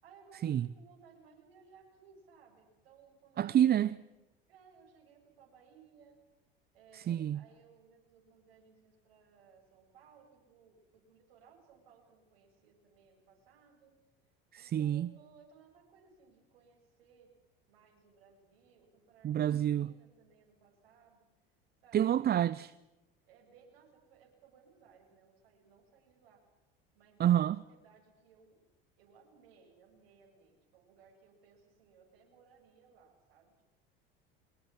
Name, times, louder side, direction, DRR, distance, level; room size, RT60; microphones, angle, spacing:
voice 1, 0.0-4.0 4.5-6.1 6.7-13.9 14.5-17.3 17.7-21.2 21.8-22.0 23.2-26.4 27.0-28.6 29.0-33.7, right 6 dB, 75° right, 7.4 m, -62 dB
voice 2, 3.4-4.0 6.9-7.4 14.5-15.1 19.2-19.9 21.9-22.7 27.2-27.6, right 10 dB, 35° right, 0.7 m, -28 dB
24.0 x 21.5 x 7.4 m
hypercardioid pair, 85°, 30 cm